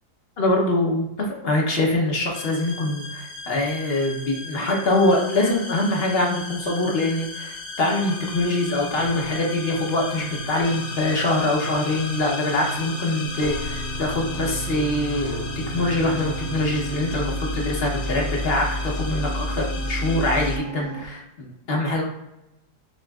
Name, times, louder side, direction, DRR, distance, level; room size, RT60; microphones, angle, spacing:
voice 1, 0.4-22.0, left 2 dB, 45° left, -1 dB, 1.0 m, -24 dB
sound 1, 2.3-20.6, left 2 dB, 70° left, 0.5 m, -33 dB
sound 2, 8.2-21.1, right 4 dB, 75° right, 1.1 m, -36 dB
6.4 x 3.1 x 2.4 m, 0.90 s
omnidirectional pair, 1.8 m